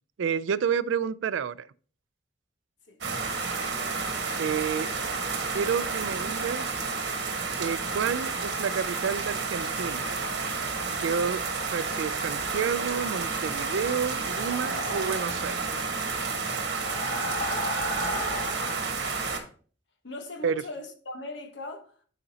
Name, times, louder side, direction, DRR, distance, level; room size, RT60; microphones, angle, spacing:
voice 1, 0.2-1.7 4.4-4.9 5.5-6.7 7.6-10.1 11.0-11.4 11.7-15.7 20.4-20.6, right 7 dB, 80° right, 0.3 m, -30 dB
sound 1, 3.0-19.4, right 4 dB, 60° right, 1.3 m, -31 dB
sound 2, 14.2-15.4 16.7-18.8, left 1 dB, 45° left, 3.2 m, -34 dB
voice 2, 17.3-18.6 20.0-22.0, left 2 dB, 65° left, 1.1 m, -41 dB
7.8 x 5.0 x 2.8 m
head